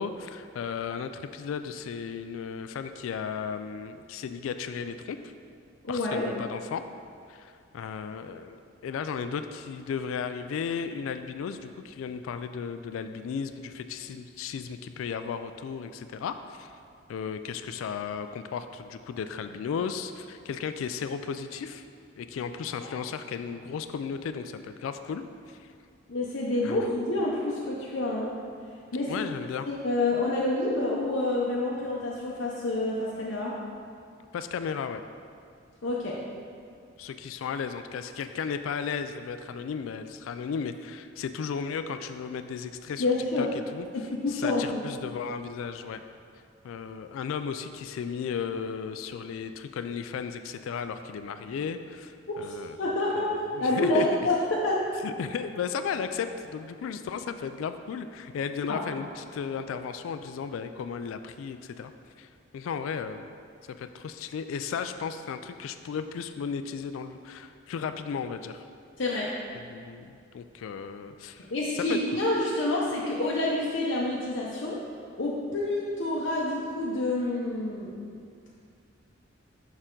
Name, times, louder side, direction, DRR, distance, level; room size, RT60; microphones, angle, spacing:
voice 1, 0.0-5.2 5.9-6.8 7.3-16.7 17.1-21.8 22.2-25.7 26.6-26.9 29.1-29.7 34.3-35.0 37.0-43.1 43.4-43.5 43.7-46.0 46.6-54.1 55.0-61.9 62.2-62.3 62.5-63.4 63.8-68.6 69.5-71.5 71.7-72.2, left 6 dB, 80° left, 10 dB, 0.3 m, -35 dB
voice 2, 5.8-6.3 22.8-22.9 26.1-28.3 28.9-29.2 29.6-33.6 35.8-36.2 43.0-43.5 43.9-44.6 52.3-54.8 58.7-58.8 69.0-69.3 71.5-74.8 75.2-78.0, left 2 dB, 65° left, -5 dB, 0.7 m, -28 dB
6.7 x 5.9 x 3.7 m, 2.3 s
head